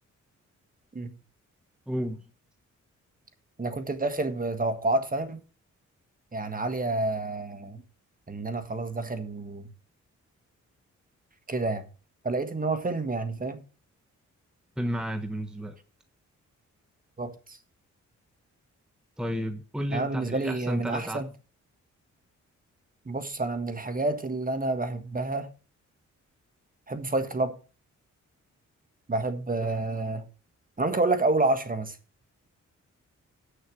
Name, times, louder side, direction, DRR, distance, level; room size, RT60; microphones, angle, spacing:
voice 1, 1.9-2.2 14.8-15.8 19.2-21.3 29.6-29.7, equal, 5° right, 1.1 m, -32 dB
voice 2, 3.6-5.4 6.3-7.8 8.3-9.7 11.5-11.9 12.2-13.6 17.2-17.6 19.9-21.3 23.0-25.5 26.9-27.6 29.1-30.3 30.8-32.0, right 2 dB, 30° right, 1.7 m, -29 dB
8.6 x 6.7 x 6.3 m
cardioid pair, 75°, 30 cm